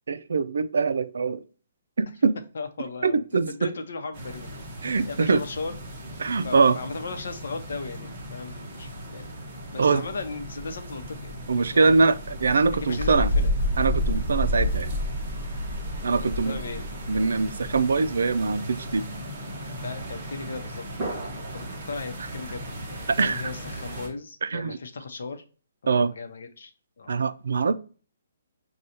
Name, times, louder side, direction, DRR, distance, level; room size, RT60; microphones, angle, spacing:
voice 1, 0.1-1.4 2.0-2.4 3.0-3.7 4.8-5.4 6.2-6.8 9.8-10.0 11.5-13.3 13.8-14.9 16.0-16.6 17.1-19.1 23.1-23.5 24.4-24.8 25.9-26.1 27.1-27.7, right 4 dB, 80° right, 0.4 m, -23 dB
voice 2, 2.5-4.6 5.1-5.8 6.4-9.4 9.7-11.4 11.7-12.1 12.8-13.6 16.2-16.8 19.8-25.4 25.8-26.7 27.0-27.1, left 4 dB, 65° left, 0.8 m, -37 dB
sound 1, 4.1-24.1, equal, 25° right, 1.1 m, -32 dB
6.4 x 2.3 x 2.8 m
hypercardioid pair, 170°, 0 cm